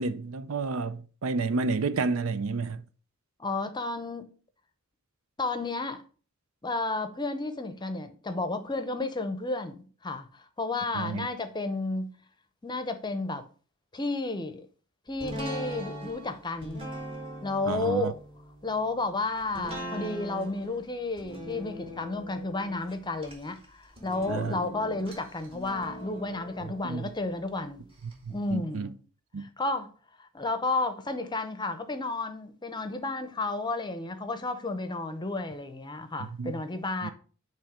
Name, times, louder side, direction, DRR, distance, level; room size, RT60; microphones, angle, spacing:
voice 1, 0.0-2.8 10.9-11.3 17.7-18.1 24.3-24.6 26.8-27.1 28.2-28.9 29.3-29.5 36.4-36.6 37.0-37.1, right 4 dB, 70° right, 0.5 m, -30 dB
voice 2, 3.4-4.3 5.4-6.0 6.6-12.1 12.6-13.5 13.9-14.7 15.1-16.8 17.4-18.2 18.6-27.8 28.3-29.0 29.4-29.9 30.2-37.1, left 2 dB, 20° left, 0.7 m, -32 dB
sound 1, 15.2-28.1 28.5-28.6, right 1 dB, 25° right, 1.9 m, -41 dB
8.9 x 3.1 x 4.9 m
head